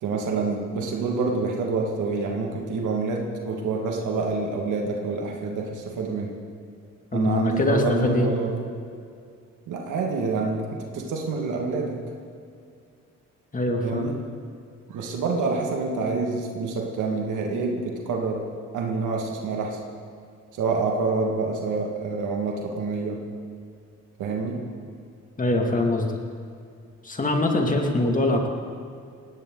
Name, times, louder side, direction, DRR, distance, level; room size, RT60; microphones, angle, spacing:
voice 1, 0.0-6.3 7.1-8.5 9.7-12.0 13.8-14.1 14.9-18.4 18.7-19.8 20.5-23.2 24.2-24.6, right 4 dB, 80° right, 0 dB, 2.1 m, -27 dB
voice 2, 7.1-8.3 13.5-14.1 25.4-26.2 27.0-28.5, left 2 dB, 25° left, 2 dB, 2.4 m, -23 dB
19.0 x 17.5 x 4.0 m, 2.3 s
cardioid pair, 90°, 30 cm